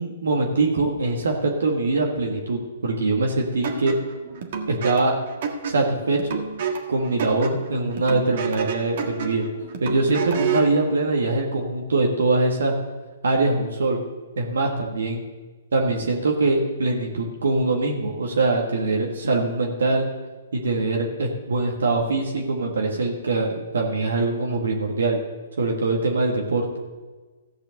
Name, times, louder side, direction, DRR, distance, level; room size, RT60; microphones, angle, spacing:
voice 1, 0.0-4.0 4.7-5.2 5.6-6.4 6.9-9.5 9.8-12.7 13.2-14.0 14.4-15.2 15.7-20.1 20.5-25.2 25.6-26.7, right 3 dB, 80° right, 0 dB, 1.6 m, -23 dB
sound 1, 3.6-10.8, right 5 dB, 55° right, 1.7 m, -30 dB
14.5 x 5.1 x 7.7 m, 1.3 s
hypercardioid pair, 140°, 0 cm